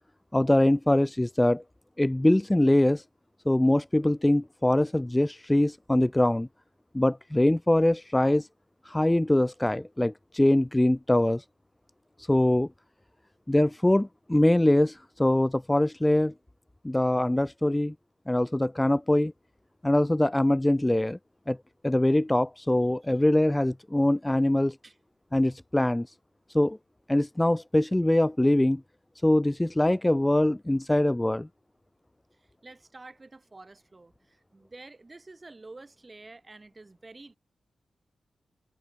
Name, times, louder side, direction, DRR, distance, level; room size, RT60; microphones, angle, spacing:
voice 1, 0.3-1.6 2.0-3.0 3.5-6.5 6.9-8.5 8.8-11.4 12.3-12.7 13.5-16.3 16.8-17.9 18.3-19.3 19.8-21.2 21.5-21.6 21.8-24.7 25.3-26.1 26.5-26.8 27.1-28.8 29.2-31.5, left 1 dB, 10° left, 0.9 m, -23 dB
voice 2, 32.4-37.4, right 2 dB, 25° right, 6.4 m, -49 dB
wide cardioid pair, 95°, 0 cm